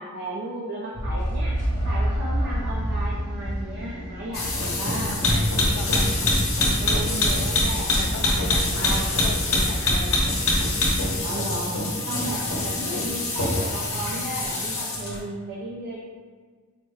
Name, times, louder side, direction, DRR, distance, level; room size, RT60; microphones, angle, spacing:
voice 1, 0.0-1.5 1.8-5.3 6.8-8.3 8.6-9.1 11.2-11.8 12.1-16.0, right 1 dB, 50° right, -6 dB, 0.5 m, -34 dB
sound 1, 0.9-4.8, equal, 35° left, 0.7 m, -27 dB
sound 2, 1.6-15.2, left 1 dB, 5° right, 0.6 m, -42 dB
sound 3, 4.3-15.2, left 2 dB, 65° left, 0.9 m, -24 dB
voice 2, 5.0-6.1 8.0-10.4, left 4 dB, 80° left, 1 dB, 0.3 m, -37 dB
5.0 x 2.1 x 3.1 m, 1.6 s
head